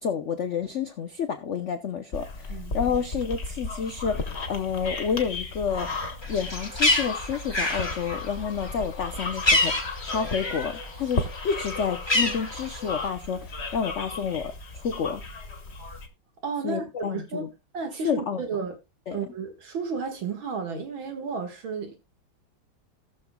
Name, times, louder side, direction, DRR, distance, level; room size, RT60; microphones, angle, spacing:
voice 1, 0.0-5.9 6.3-9.7 10.1-15.2 16.6-17.5 18.0-18.4 19.1-19.2, left 6 dB, 70° left, 0.6 m, -29 dB
sound 1, 2.1-16.1, left 3 dB, 35° left, 1.5 m, -35 dB
Bird, 6.2-10.8 11.1-13.1, left 2 dB, 15° left, 1.3 m, -27 dB
voice 2, 16.4-16.8 17.1-18.7 19.1-22.0, right 5 dB, 80° right, 2.5 m, -32 dB
18.5 x 6.6 x 2.2 m
omnidirectional pair, 2.1 m